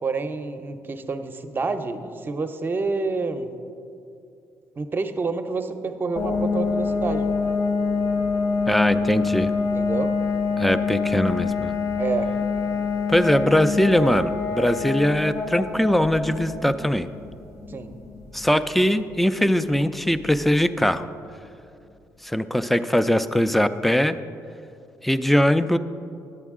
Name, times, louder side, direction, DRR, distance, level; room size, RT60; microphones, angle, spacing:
voice 1, 0.0-3.5 4.8-7.3 9.7-10.2 12.0-12.4 17.7-18.0, right 4 dB, 30° right, 8 dB, 0.6 m, -28 dB
sound 1, 6.2-20.7, left 4 dB, 55° left, 1.3 m, -26 dB
voice 2, 8.7-9.5 10.6-11.7 13.1-17.1 18.3-21.1 22.2-24.2 25.0-25.8, equal, ahead, 12 dB, 0.3 m, -21 dB
11.0 x 8.2 x 3.6 m, 2.5 s
cardioid pair, 85°, 7 cm